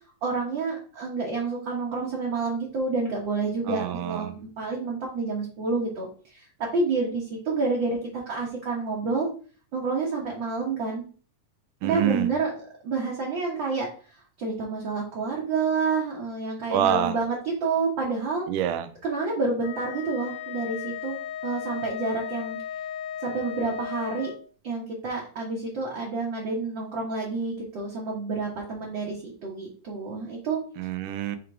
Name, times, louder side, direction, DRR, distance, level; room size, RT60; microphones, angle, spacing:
voice 1, 0.2-9.3 9.7-11.0 11.8-12.5 12.8-13.9 14.4-18.4 19.0-21.2 21.4-22.6 23.2-24.3 24.6-30.6, right 4 dB, 55° right, -3 dB, 1.4 m, -29 dB
voice 2, 3.7-4.3 11.8-12.3 16.7-17.1 18.5-18.9 30.8-31.4, right 10 dB, 85° right, 10 dB, 2.2 m, -26 dB
Wind instrument woodwind instrument, 19.6-24.4, left 10 dB, 90° left, 2.3 m, -36 dB
5.8 x 3.6 x 4.7 m, 0.41 s
omnidirectional pair, 3.6 m